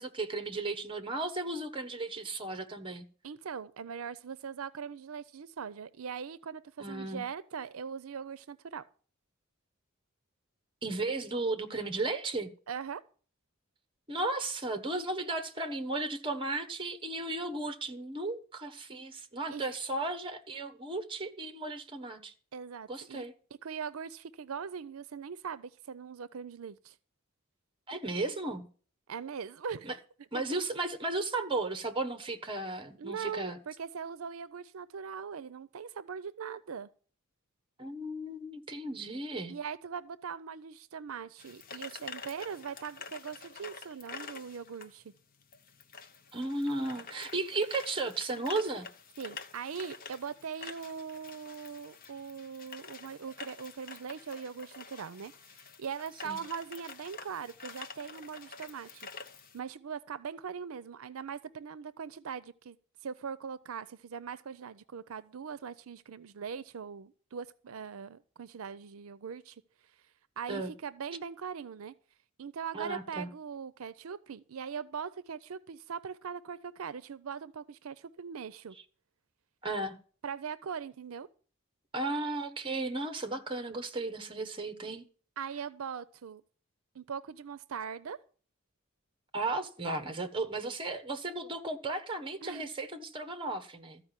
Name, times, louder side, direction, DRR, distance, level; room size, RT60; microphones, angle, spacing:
voice 1, 0.0-3.0 6.8-7.2 10.8-12.5 14.1-22.3 22.9-23.3 27.9-28.7 29.8-29.9 30.3-33.6 37.8-39.5 46.3-48.9 56.2-56.4 70.5-70.7 72.7-73.3 79.6-80.0 81.9-85.1 89.3-94.0, right 2 dB, 25° right, 1.3 m, -35 dB
voice 2, 3.2-8.8 12.7-13.0 19.5-19.7 22.5-23.2 23.6-27.0 29.1-29.9 30.3-30.4 33.0-36.9 39.5-45.1 49.2-59.1 59.5-62.8 63.0-69.6 70.4-71.9 72.4-78.8 80.2-81.3 85.4-86.4 86.9-88.2 92.4-92.7, right 6 dB, 80° right, 0.5 m, -41 dB
sound 1, 41.4-59.6, left 5 dB, 45° left, 1.0 m, -48 dB
14.0 x 5.1 x 9.0 m
head